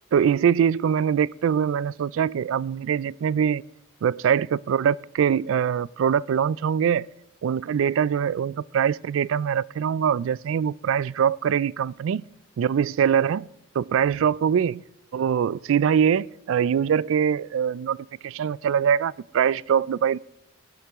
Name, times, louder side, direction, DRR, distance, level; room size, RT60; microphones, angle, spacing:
voice 1, 0.1-3.6 4.0-7.1 7.4-12.2 12.6-13.5 13.8-14.8 15.1-18.0 18.2-20.2, right 8 dB, 75° right, 0.3 m, -23 dB
19.5 x 8.4 x 3.6 m
head